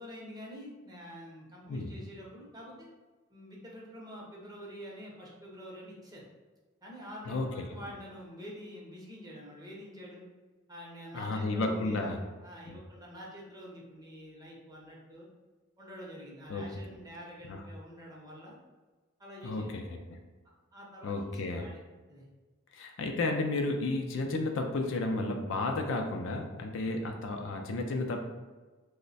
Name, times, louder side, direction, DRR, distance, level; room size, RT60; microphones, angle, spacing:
voice 1, 0.0-2.9 3.3-6.2 6.8-10.2 10.7-15.3 15.8-18.5 19.2-19.8 20.7-21.8 22.1-22.3, equal, 20° right, -3 dB, 0.7 m, -47 dB
voice 2, 7.3-7.6 11.1-12.2 12.7-12.8 16.5-16.7 17.5-17.6 19.4-19.8 20.1-20.2 21.0-21.6 22.7-28.2, left 2 dB, 60° left, 3 dB, 0.4 m, -32 dB
3.1 x 2.1 x 4.0 m, 1.3 s
head